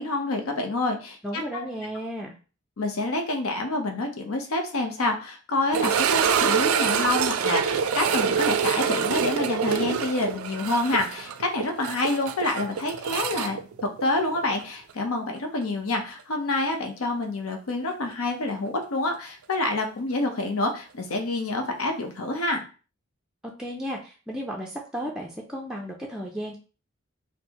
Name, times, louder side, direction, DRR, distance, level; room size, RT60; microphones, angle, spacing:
voice 1, 0.0-1.7 2.8-13.6 14.0-22.6, left 2 dB, 85° left, 4 dB, 0.7 m, -27 dB
voice 2, 1.2-2.3 23.6-26.6, equal, 5° right, -2 dB, 0.3 m, -34 dB
sound 1, 5.7-14.6 14.9-15.0 15.6-15.7 18.3-18.4, right 7 dB, 85° right, 0.4 m, -26 dB
4.3 x 2.0 x 2.8 m, 0.36 s
head